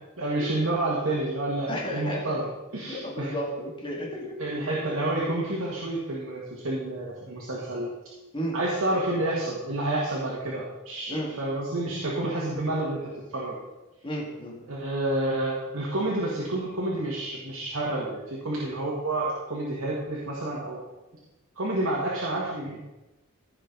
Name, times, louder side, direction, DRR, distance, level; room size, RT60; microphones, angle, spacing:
voice 1, 0.2-3.3 4.4-7.9 8.5-13.0 13.3-13.6 14.7-20.8 21.6-22.9, right 1 dB, 75° right, -5 dB, 1.8 m, -29 dB
voice 2, 1.7-2.4 2.8-4.3 8.3-8.6 11.1-11.3 14.0-14.6, equal, 25° left, -3 dB, 2.4 m, -32 dB
15.0 x 5.7 x 4.0 m, 1.0 s
head